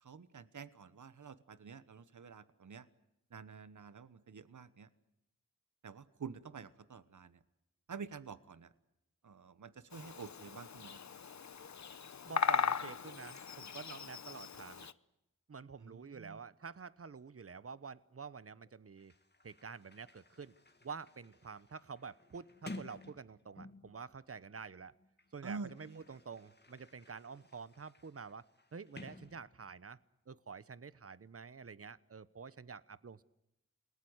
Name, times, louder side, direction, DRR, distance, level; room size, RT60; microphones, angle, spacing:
voice 1, 0.0-2.9 3.3-4.9 5.8-7.4 7.9-8.7 9.2-11.0 15.8-16.4 25.4-26.0, right 5 dB, 75° right, 14 dB, 1.2 m, -49 dB
Bird vocalization bird call bird song, 9.9-14.9, left 6 dB, 65° left, 0.9 m, -38 dB
voice 2, 12.2-14.9 15.5-19.1 19.4-20.5 20.8-24.9 25.3-28.4 28.7-30.0 30.3-33.2, right 5 dB, 50° right, 17 dB, 1.0 m, -48 dB
Sliding door, 18.7-18.8 19.0-24.0 24.9-29.9, left 2 dB, 35° left, 2.0 m, -54 dB
28.5 x 19.5 x 8.1 m, 0.86 s
cardioid pair, 50°, 30 cm